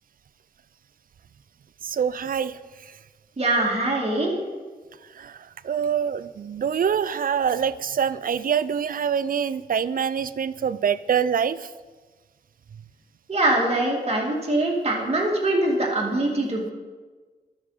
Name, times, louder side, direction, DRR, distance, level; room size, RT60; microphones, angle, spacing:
voice 1, 1.8-2.6 5.2-11.7, right 7 dB, 55° right, 16 dB, 0.4 m, -25 dB
voice 2, 3.4-4.4 13.3-16.7, right 2 dB, 35° right, -2 dB, 2.3 m, -23 dB
12.5 x 5.5 x 4.9 m, 1.4 s
cardioid pair, 75°, 17 cm